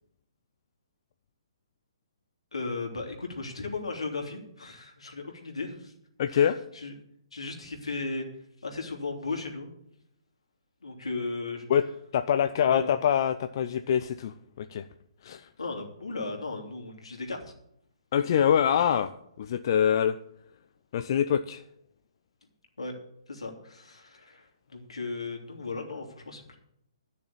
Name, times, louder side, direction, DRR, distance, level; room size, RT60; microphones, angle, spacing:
voice 1, 2.5-5.9 6.3-6.9 7.3-8.3 8.6-9.7 10.8-11.6 12.7-12.9 15.6-17.4 22.8-22.9 23.3-26.6, left 3 dB, 75° left, 1 dB, 3.2 m, -36 dB
voice 2, 6.2-6.6 11.7-11.8 12.1-14.8 15.2-15.5 18.1-19.1 19.4-20.2 20.9-21.6, left 8 dB, 45° left, 10 dB, 0.6 m, -25 dB
12.0 x 6.7 x 8.5 m, 0.74 s
figure-of-eight pair, 130°, 3 cm